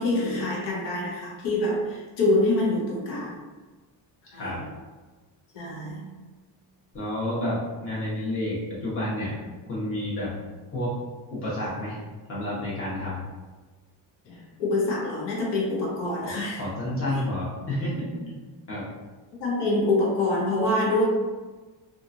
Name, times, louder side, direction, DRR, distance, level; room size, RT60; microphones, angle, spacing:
voice 1, 0.0-3.4 4.3-4.6 5.5-6.2 14.3-16.6 17.1-17.2 19.4-21.0, left 2 dB, 80° left, -4 dB, 0.9 m, -26 dB
voice 2, 4.3-4.6 6.9-9.3 9.6-10.3 10.7-11.0 11.3-12.0 12.3-13.2 16.2-18.4 18.7-18.9, left 1 dB, 30° left, -8 dB, 1.1 m, -30 dB
2.9 x 2.4 x 2.6 m, 1.3 s
cardioid pair, 170°, 42 cm